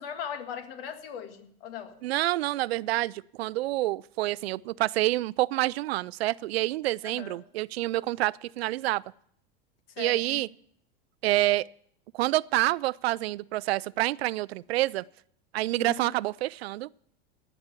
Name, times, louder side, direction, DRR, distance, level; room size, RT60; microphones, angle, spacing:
voice 1, 0.0-2.0 7.0-7.4 10.0-10.4 15.8-16.1, left 8 dB, 70° left, 1.8 m, -39 dB
voice 2, 2.0-9.0 10.0-10.5 11.2-11.7 12.1-15.0 15.5-16.9, right 17 dB, 80° right, 0.5 m, -27 dB
18.0 x 6.1 x 8.2 m
hypercardioid pair, 95°, 31 cm